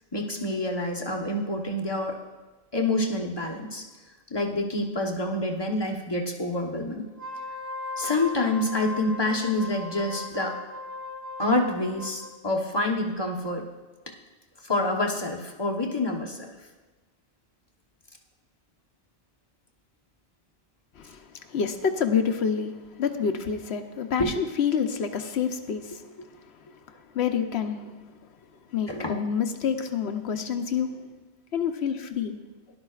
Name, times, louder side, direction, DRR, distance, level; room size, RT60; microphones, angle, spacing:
voice 1, 0.1-2.2 2.7-3.8 4.3-7.0 8.0-10.6 11.4-13.7 14.6-16.5 24.2-24.3 28.9-29.1, left 2 dB, 25° left, 0 dB, 1.0 m, -27 dB
Wind instrument woodwind instrument, 7.1-12.4, left 2 dB, 20° right, 1.2 m, -38 dB
voice 2, 20.9-26.1 26.4-28.0 28.7-31.1 31.5-32.4, left 7 dB, 75° left, 7 dB, 1.0 m, -28 dB
17.5 x 11.5 x 2.4 m, 1.2 s
omnidirectional pair, 1.1 m